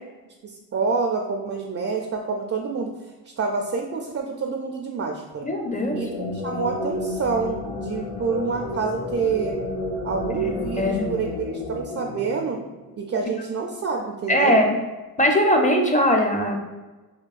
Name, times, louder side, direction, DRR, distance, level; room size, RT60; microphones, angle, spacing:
voice 1, 0.4-2.9 3.4-5.5 5.9-9.6 10.0-12.6 13.0-14.6, right 5 dB, 40° right, 2 dB, 0.4 m, -27 dB
voice 2, 5.4-6.0 10.3-11.0 14.3-14.8 15.2-16.5, equal, 20° left, 2 dB, 0.6 m, -20 dB
sound 1, 5.6-13.1, left 2 dB, 80° left, 0.6 m, -31 dB
4.6 x 2.2 x 2.4 m, 1.2 s
cardioid pair, 60°, 39 cm